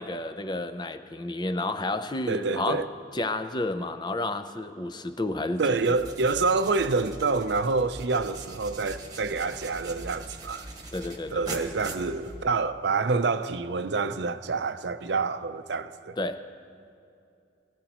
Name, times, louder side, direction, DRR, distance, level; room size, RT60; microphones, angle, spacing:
voice 1, 0.0-2.9 3.1-5.8 10.9-11.6 16.2-16.5, left 2 dB, 25° left, 0.5 m, -31 dB
voice 2, 2.3-2.9 5.6-10.7 11.3-16.2, right 4 dB, 70° right, 0.6 m, -27 dB
sound 1, 5.7-12.7, right 2 dB, 20° right, 1.3 m, -42 dB
22.5 x 15.0 x 3.0 m
head